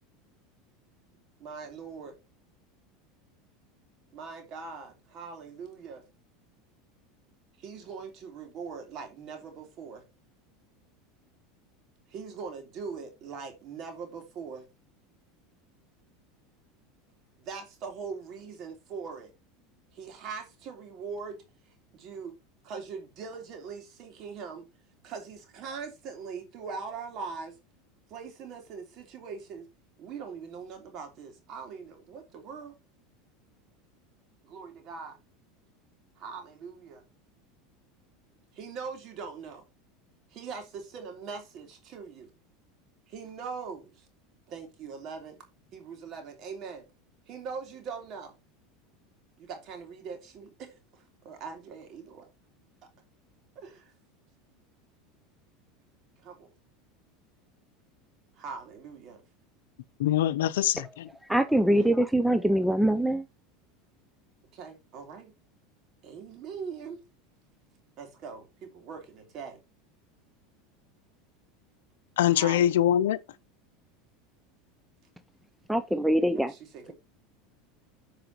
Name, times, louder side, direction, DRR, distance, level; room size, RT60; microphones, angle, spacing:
voice 1, 1.4-2.2 4.1-6.0 7.6-10.0 12.1-14.7 17.4-19.3 19.9-21.4 21.9-22.3 22.6-24.6 25.0-27.5 28.1-29.7 30.0-32.7 34.4-35.2 36.2-37.0 38.5-39.6 40.3-42.3 43.1-44.1 44.5-45.4 45.7-46.8 47.3-48.3 49.4-52.3 53.5-53.9 56.2-56.5 58.4-59.2 61.5-61.9 64.5-65.3 66.0-67.0 68.0-69.6 72.3-72.7 76.3-76.9, right 5 dB, 45° right, 3.2 m, -41 dB
voice 2, 60.0-61.1 72.2-73.2, left 11 dB, 85° left, 0.6 m, -24 dB
voice 3, 61.3-63.2 75.7-76.5, right 1 dB, 5° right, 0.5 m, -23 dB
14.0 x 4.8 x 3.0 m
supercardioid pair, 120°, 0 cm